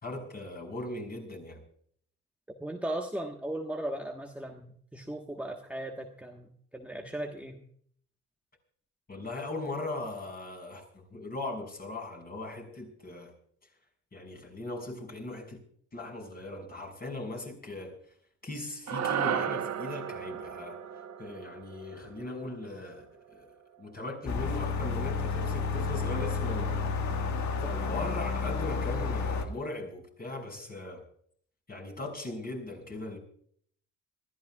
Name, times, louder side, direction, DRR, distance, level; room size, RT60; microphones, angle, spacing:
voice 1, 0.0-1.6 9.1-10.8 11.1-13.3 14.1-15.6 15.9-18.0 18.4-20.8 21.2-23.5 23.8-26.8 27.6-31.0 31.7-33.2, left 2 dB, 30° left, 6.4 m, -39 dB
voice 2, 2.6-7.6 27.6-28.0, right 1 dB, 5° right, 1.3 m, -37 dB
sound 1, 18.9-23.3, right 8 dB, 60° right, 1.1 m, -35 dB
sound 2, 24.3-29.5, left 4 dB, 70° left, 1.7 m, -31 dB
25.5 x 14.5 x 2.3 m
cardioid pair, 90°, 30 cm